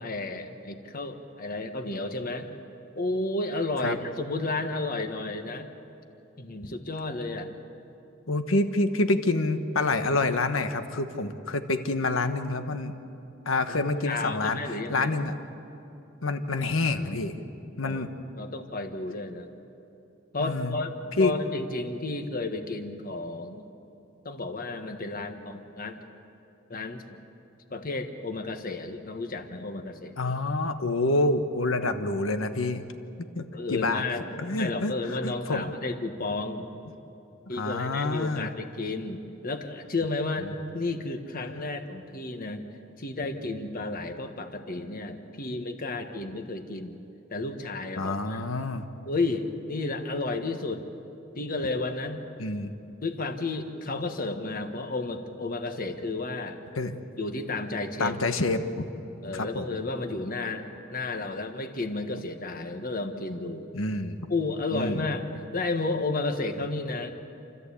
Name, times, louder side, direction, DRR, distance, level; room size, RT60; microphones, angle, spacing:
voice 1, 0.0-2.5 3.0-5.7 6.4-7.5 13.7-15.1 17.8-18.0 18.4-19.5 20.3-23.7 24.2-26.0 26.7-27.2 27.7-30.2 33.5-36.7 37.5-42.6 43.0-47.0 47.3-48.4 49.1-50.9 51.3-52.2 53.0-56.6 57.2-58.2 59.2-63.7 64.3-67.1, left 2 dB, 45° left, 6 dB, 1.5 m, -32 dB
voice 2, 8.3-13.0 13.4-14.6 14.9-15.3 16.2-17.3 17.8-18.1 20.4-20.8 21.2-21.3 30.2-32.8 33.3-34.0 34.4-34.9 35.2-35.7 37.5-38.5 48.0-48.8 52.4-52.7 56.7-56.9 58.0-58.6 59.3-59.7 63.7-64.2 64.7-65.1, left 2 dB, 80° left, 8 dB, 1.3 m, -27 dB
28.5 x 14.0 x 8.4 m, 2.8 s
head